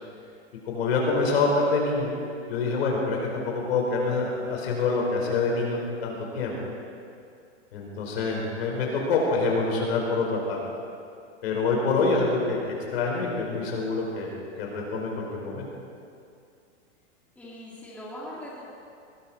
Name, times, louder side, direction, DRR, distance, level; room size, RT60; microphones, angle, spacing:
voice 1, 0.7-2.1 2.5-6.6 7.7-10.6 11.4-12.6 12.9-15.7, left 3 dB, 60° left, -1 dB, 4.9 m, -26 dB
voice 2, 17.4-18.6, equal, 5° left, -7 dB, 2.0 m, -40 dB
21.0 x 15.0 x 4.4 m, 2.5 s
supercardioid pair, 170°, 36 cm